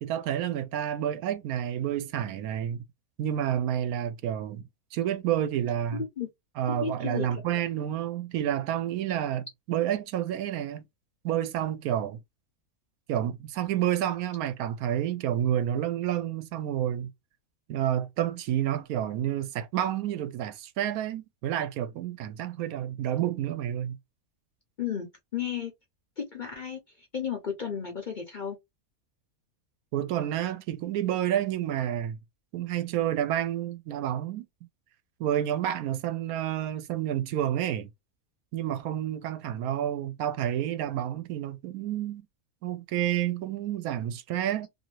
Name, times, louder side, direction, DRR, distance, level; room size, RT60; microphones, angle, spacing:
voice 1, 0.0-2.8 3.2-4.6 4.9-6.0 6.6-10.8 11.2-12.2 13.1-17.1 17.7-24.0 29.9-32.2 32.5-34.5 35.2-37.9 38.5-42.3 42.6-44.7, right 11 dB, 80° right, 1.0 m, -29 dB
voice 2, 5.9-6.3 6.7-7.3 24.8-25.7 26.2-28.6, left 7 dB, 50° left, 0.6 m, -34 dB
2.8 x 2.6 x 2.9 m
omnidirectional pair, 1.5 m